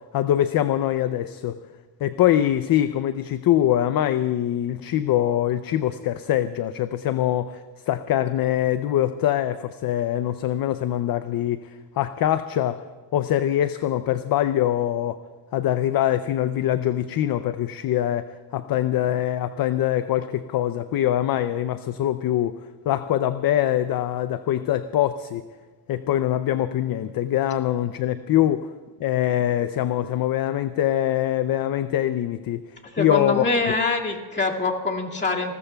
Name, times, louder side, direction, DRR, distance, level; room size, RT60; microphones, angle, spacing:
voice 1, 0.1-1.6 2.0-12.8 13.1-15.2 15.5-18.3 18.5-22.6 22.9-25.4 25.9-28.7 29.0-32.6 33.0-33.7, left 12 dB, 50° left, 11 dB, 0.5 m, -23 dB
voice 2, 32.9-35.6, left 3 dB, 25° left, -1 dB, 2.1 m, -24 dB
29.5 x 20.5 x 2.3 m, 1.3 s
cardioid pair, 125°, 46 cm